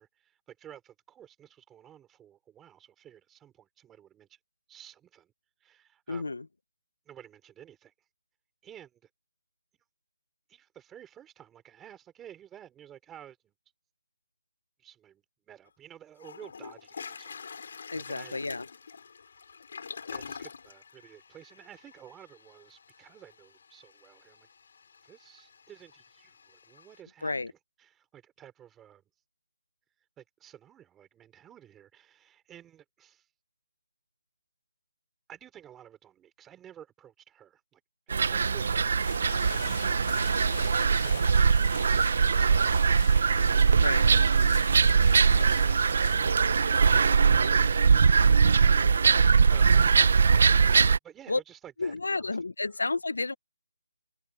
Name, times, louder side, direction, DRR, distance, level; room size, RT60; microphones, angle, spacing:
voice 1, 0.0-4.4 4.7-5.3 5.6-6.3 7.1-7.9 8.6-9.1 10.5-13.5 14.8-18.4 20.1-24.5 25.0-29.0 30.2-33.3 35.3-37.8 38.1-39.0 51.0-52.4 52.6-52.7, right 10 dB, 5° right, 3.5 m, -53 dB
voice 2, 6.1-6.4 17.9-18.7 27.2-27.5 43.8-44.0 51.3-51.4 51.8-53.3, left 3 dB, 85° left, 1.0 m, -31 dB
Toilet flush, 15.7-15.8 16.2-27.0, left 5 dB, 40° left, 4.0 m, -46 dB
sound 1, 38.1-51.0, right 5 dB, 40° right, 1.1 m, -22 dB
sound 2, 39.0-48.6, left 10 dB, 25° left, 5.2 m, -45 dB
hypercardioid pair, 175°, 0 cm